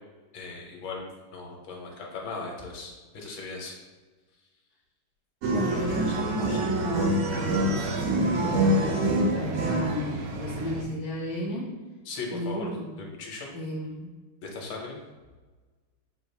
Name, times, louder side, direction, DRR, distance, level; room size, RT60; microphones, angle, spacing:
voice 1, 0.3-1.0 1.3-3.7 5.7-5.8 12.0-12.7 13.0-13.5 14.4-15.0, left 4 dB, 70° left, 0 dB, 1.5 m, -38 dB
sound 1, 5.4-10.8, right 1 dB, 90° right, 0.8 m, -26 dB
voice 2, 5.5-11.7 12.3-12.9 13.5-14.1, equal, 30° right, -7 dB, 0.5 m, -32 dB
6.4 x 2.4 x 3.2 m, 1.3 s
omnidirectional pair, 2.3 m